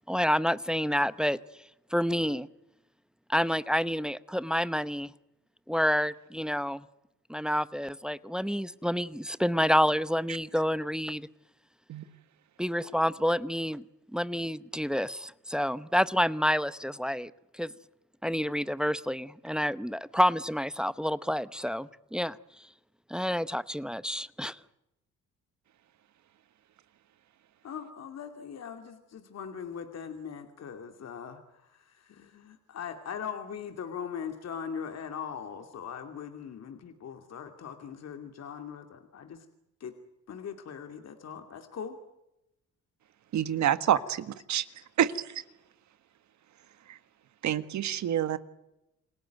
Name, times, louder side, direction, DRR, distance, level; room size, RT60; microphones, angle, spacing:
voice 1, 0.1-1.4 1.9-2.5 3.3-5.1 5.7-6.8 7.3-11.3 12.6-13.8 14.1-17.7 18.2-22.4 23.1-24.6, equal, 5° right, 16 dB, 0.8 m, -28 dB
voice 2, 27.6-39.4 39.8-39.9 40.3-42.0, left 7 dB, 60° left, 6 dB, 2.6 m, -40 dB
voice 3, 43.3-44.0 44.5-44.6 45.0-45.4 46.9-47.0 47.4-48.4, right 10 dB, 65° right, 13 dB, 1.6 m, -27 dB
28.5 x 17.5 x 9.3 m, 0.89 s
cardioid pair, 90°, 30 cm